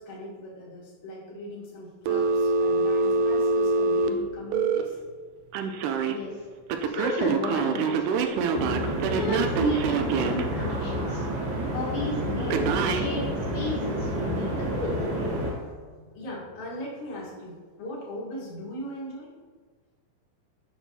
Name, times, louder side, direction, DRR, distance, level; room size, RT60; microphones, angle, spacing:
voice 1, 0.0-5.0 15.5-19.3, equal, 55° left, -4 dB, 1.8 m, -39 dB
Telephone, 2.1-4.8 5.5-6.1 6.7-10.4 12.5-13.0, right 4 dB, 85° right, 1.8 m, -25 dB
voice 2, 6.8-8.3 9.1-11.2 11.7-13.3 13.5-15.2, left 2 dB, 75° left, -5 dB, 1.5 m, -32 dB
sound 1, 8.5-15.5, right 1 dB, 70° right, 3.3 m, -29 dB
8.0 x 5.9 x 2.7 m, 1.5 s
omnidirectional pair, 4.1 m